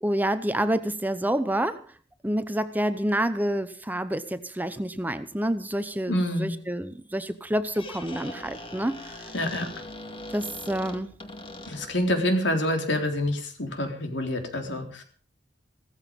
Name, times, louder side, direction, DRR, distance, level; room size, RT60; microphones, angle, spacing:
voice 1, 0.0-1.8 2.2-9.2 10.3-11.1, right 1 dB, 10° right, 11 dB, 0.8 m, -28 dB
voice 2, 6.1-6.5 9.3-9.9 11.7-15.0, left 1 dB, 75° left, 4 dB, 3.7 m, -27 dB
Squeak, 7.5-12.1, left 2 dB, 30° left, 2.2 m, -41 dB
16.0 x 14.5 x 5.3 m, 0.42 s
head